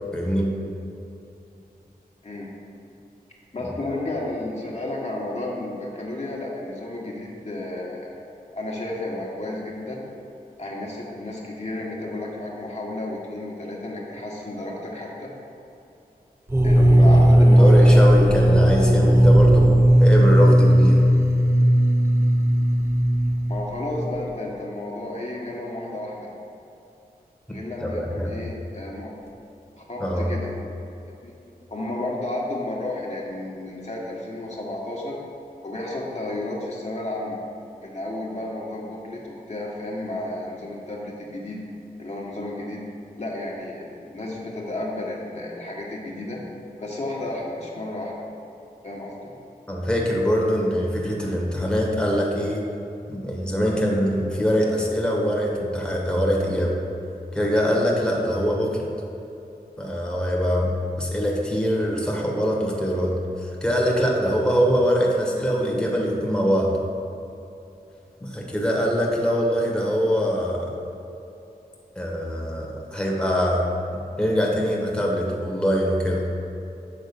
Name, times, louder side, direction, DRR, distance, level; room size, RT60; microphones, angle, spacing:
voice 1, 0.1-0.5 16.9-21.0 27.8-28.3 30.0-30.3 49.7-52.6 53.1-56.7 57.3-58.8 59.8-63.1 63.4-66.7 68.2-70.6 72.0-73.6 74.2-76.2, equal, 5° left, -2 dB, 1.2 m, -23 dB
voice 2, 3.5-8.2 8.5-10.0 10.6-15.5 16.6-18.1 23.5-26.3 27.5-29.1 29.8-30.5 31.2-31.3 31.7-35.2 35.6-37.4 37.8-41.6 42.0-42.8 43.2-46.4 46.8-48.1 48.8-49.3, left 2 dB, 45° left, -4 dB, 1.2 m, -32 dB
sound 1, 16.5-24.2, equal, 15° right, 0.6 m, -16 dB
6.9 x 3.6 x 5.2 m, 2.8 s
cardioid pair, 45°, 16 cm